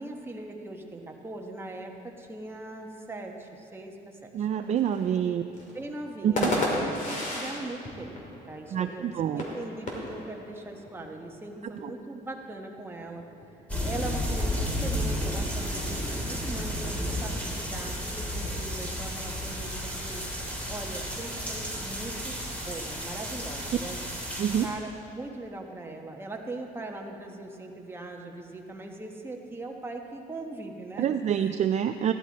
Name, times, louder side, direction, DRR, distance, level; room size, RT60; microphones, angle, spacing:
voice 1, 0.0-4.5 5.1-5.4 5.7-8.2 8.5-13.2 13.8-20.2 20.7-24.0 24.6-31.5, right 2 dB, 15° right, 1 dB, 1.3 m, -40 dB
voice 2, 4.3-5.4 6.2-6.5 8.7-9.4 11.8-11.9 24.4-24.7 31.0-32.1, right 9 dB, 45° right, 8 dB, 0.4 m, -26 dB
sound 1, 4.5-23.4, left 2 dB, 50° left, 2.6 m, -38 dB
sound 2, 13.7-24.7, equal, 10° left, 2.8 m, -32 dB
15.0 x 11.5 x 4.2 m, 2.6 s
cardioid pair, 110°, 17 cm